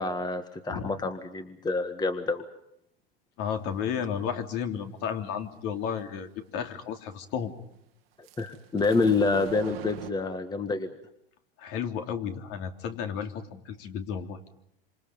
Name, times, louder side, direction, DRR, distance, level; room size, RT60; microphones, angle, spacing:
voice 1, 0.0-2.4 8.4-10.9, left 3 dB, 15° left, 9 dB, 1.7 m, -27 dB
voice 2, 3.4-7.5 11.6-14.4, left 7 dB, 50° left, 6 dB, 3.2 m, -33 dB
sound 1, 8.2-10.1, right 12 dB, 80° right, 2.0 m, -41 dB
27.0 x 27.0 x 5.3 m, 0.75 s
hypercardioid pair, 120°, 29 cm